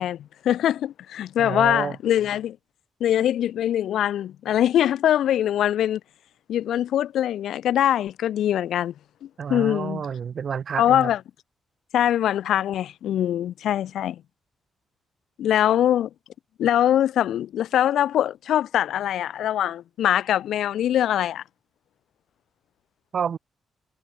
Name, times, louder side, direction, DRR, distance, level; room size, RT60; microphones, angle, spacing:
voice 1, 0.0-2.6 3.0-6.0 6.5-8.9 9.2-10.1 10.8-11.2 11.9-14.2 15.4-16.1 16.6-21.4, left 11 dB, 80° left, 4.7 m, -23 dB
voice 2, 1.4-2.0 9.4-11.1 23.1-23.4, right 7 dB, 50° right, 2.4 m, -29 dB
cardioid pair, 115°, 0 cm